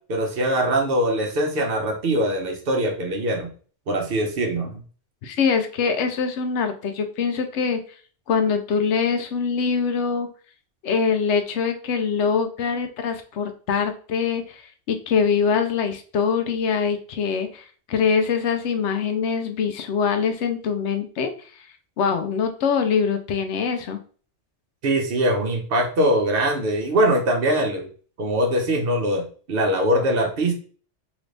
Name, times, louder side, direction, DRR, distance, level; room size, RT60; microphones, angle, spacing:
voice 1, 0.1-3.5 3.9-4.8 24.8-27.9 28.2-30.5, right 1 dB, 60° right, 3 dB, 0.8 m, -22 dB
voice 2, 5.2-7.8 8.3-10.3 10.8-21.6 22.0-24.0, left 6 dB, 80° left, 7 dB, 0.9 m, -23 dB
3.0 x 2.5 x 3.2 m, 0.41 s
omnidirectional pair, 1.2 m